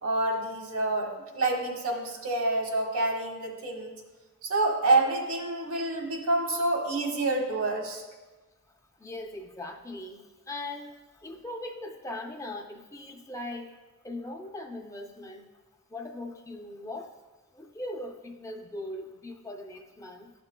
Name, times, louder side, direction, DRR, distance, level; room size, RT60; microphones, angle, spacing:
voice 1, 0.0-4.0 4.4-8.0, right 2 dB, 85° right, 1 dB, 1.3 m, -27 dB
voice 2, 9.0-10.9 11.2-13.7 14.0-15.4 15.9-17.1 17.5-20.3, left 1 dB, 15° left, 3 dB, 0.4 m, -39 dB
12.5 x 5.9 x 2.2 m, 1.2 s
head